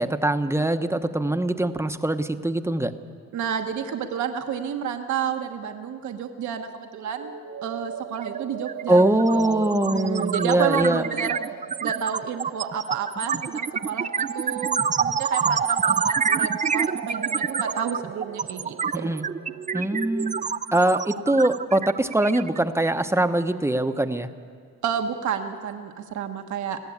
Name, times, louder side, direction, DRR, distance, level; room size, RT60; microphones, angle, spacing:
voice 1, 0.0-2.9 8.9-11.0 18.9-19.3 19.7-20.4 20.7-24.3, right 1 dB, 10° right, 8 dB, 0.9 m, -22 dB
voice 2, 3.3-7.4 7.6-11.4 11.8-19.0 24.8-26.8, right 8 dB, 70° right, 5 dB, 1.3 m, -30 dB
sound 1, 7.2-20.4, right 10 dB, 55° right, 0.9 m, -36 dB
sound 2, 8.2-8.4 8.7-23.0, right 6 dB, 25° right, 0.5 m, -27 dB
21.5 x 15.5 x 8.7 m, 2.1 s
cardioid pair, 90°, 30 cm